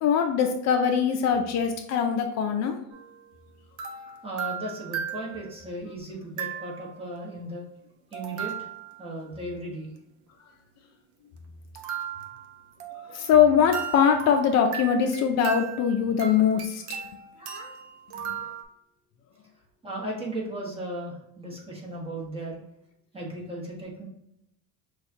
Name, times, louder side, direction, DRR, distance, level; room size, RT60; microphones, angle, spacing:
voice 1, 0.0-2.8 13.1-16.8 18.3-18.4, left 7 dB, 55° left, 5 dB, 0.5 m, -22 dB
sound 1, 2.9-3.2 3.8-5.7 6.4-7.0 8.1-9.1 11.7-13.3 13.7-18.6, right 8 dB, 65° right, 0.7 m, -37 dB
voice 2, 4.2-7.6 8.1-8.5 9.0-9.9 13.0-13.2 16.9-17.0 17.4-17.7 18.4-18.5 19.8-22.6 23.1-24.0, right 1 dB, 15° right, -4 dB, 1.2 m, -36 dB
6.1 x 2.4 x 2.8 m, 0.79 s
cardioid pair, 150°, 32 cm